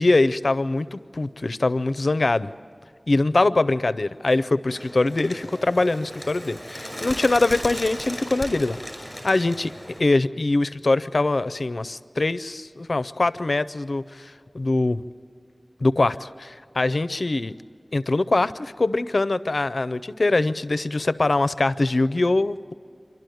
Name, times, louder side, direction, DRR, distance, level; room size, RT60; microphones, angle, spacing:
voice 1, 0.0-2.5 3.1-8.8 9.2-9.7 10.0-15.0 15.8-17.5 17.9-22.7, left 2 dB, 75° left, 15 dB, 0.5 m, -23 dB
Bird, 4.7-10.0, equal, ahead, 5.5 m, -36 dB
28.0 x 12.0 x 9.2 m, 2.3 s
wide cardioid pair, 55°, 0 cm